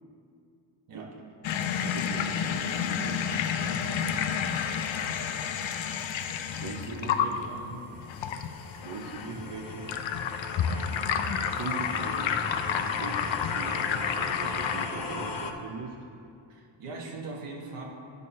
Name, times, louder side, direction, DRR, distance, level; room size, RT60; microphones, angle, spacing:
sound 1, 1.4-14.9, left 7 dB, 65° left, 0.6 m, -30 dB
voice 1, 1.8-4.3 6.5-7.5 8.8-10.0 11.5-12.4 12.7-16.0, right 4 dB, 55° right, 2 dB, 0.9 m, -41 dB
sound 2, 6.8-15.5, left 4 dB, 45° left, 0.9 m, -38 dB
voice 2, 6.9-7.8 16.5-17.8, right 3 dB, 85° right, -1 dB, 1.4 m, -41 dB
9.8 x 5.4 x 4.2 m, 2.5 s
cardioid pair, 65°, 50 cm